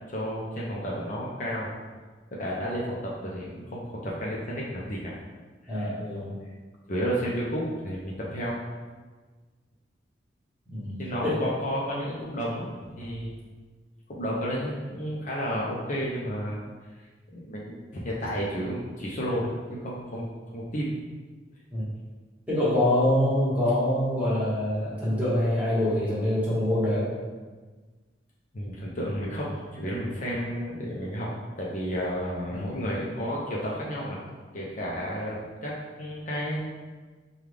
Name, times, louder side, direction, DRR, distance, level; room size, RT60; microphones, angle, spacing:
voice 1, 0.1-1.7 2.3-5.2 5.6-5.9 6.9-8.6 11.0-13.3 14.1-16.6 17.3-20.9 28.5-34.2 34.5-36.6, equal, 45° left, -5 dB, 0.6 m, -32 dB
voice 2, 5.7-6.3 10.7-11.0 11.2-11.4 21.7-21.9 22.5-27.1 32.5-32.7, left 1 dB, 10° right, -9 dB, 1.4 m, -25 dB
5.1 x 2.3 x 3.3 m, 1.4 s
head